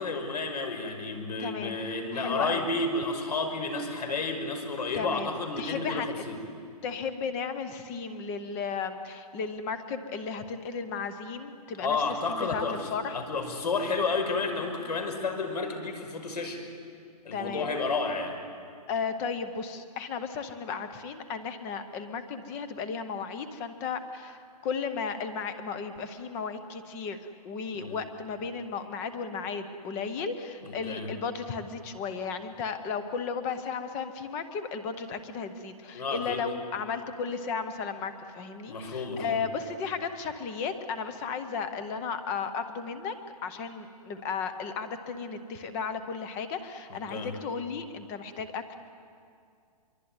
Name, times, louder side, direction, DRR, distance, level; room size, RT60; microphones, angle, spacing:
voice 1, 0.0-6.4 11.8-16.6 17.2-18.4 27.7-28.0 30.6-31.1 35.9-36.5 38.7-39.4 46.9-47.3, left 3 dB, 80° left, 5 dB, 5.7 m, -31 dB
voice 2, 1.4-1.8 2.1-2.7 4.9-6.1 6.8-12.0 12.3-13.2 17.3-17.7 18.9-27.2 27.4-43.1 43.4-48.7, left 5 dB, 10° left, 10 dB, 0.7 m, -34 dB
25.0 x 23.0 x 9.6 m, 2.3 s
hypercardioid pair, 175°, 21 cm